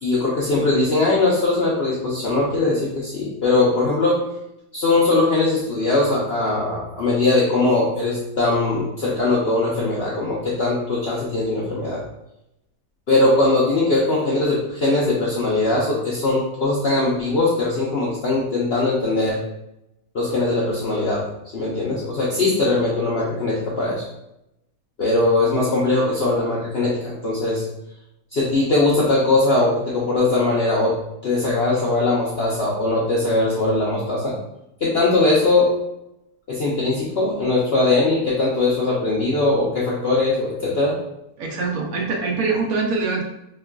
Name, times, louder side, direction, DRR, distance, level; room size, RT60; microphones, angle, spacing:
voice 1, 0.0-4.3 4.7-12.0 13.1-19.4 20.1-21.3 21.5-24.0 25.0-27.6 28.3-30.9 31.2-34.4 34.8-35.7 36.5-40.9, left 2 dB, 65° left, -6 dB, 0.6 m, -20 dB
voice 2, 41.4-43.2, right 4 dB, 70° right, 0 dB, 1.0 m, -23 dB
4.4 x 2.4 x 2.2 m, 0.86 s
omnidirectional pair, 1.7 m